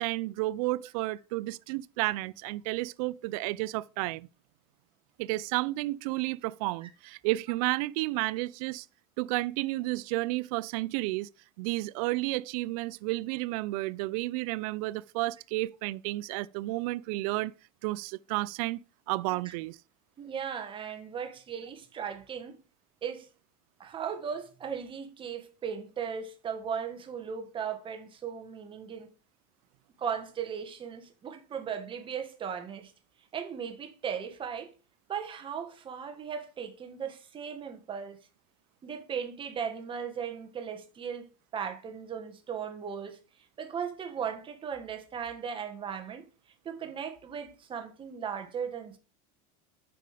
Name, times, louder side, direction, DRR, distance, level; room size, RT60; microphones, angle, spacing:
voice 1, 0.0-4.3 5.2-8.9 9.2-11.3 11.6-17.5 17.8-18.8 19.1-19.8, right 19 dB, 70° right, 0.4 m, -31 dB
voice 2, 20.2-22.6 23.0-23.3 23.8-29.1 30.0-32.9 33.3-34.7 35.1-38.2 38.8-41.3 41.5-43.2 43.6-46.3 46.6-49.0, right 7 dB, 25° right, 1.5 m, -37 dB
7.9 x 5.6 x 4.9 m
supercardioid pair, 135°, 19 cm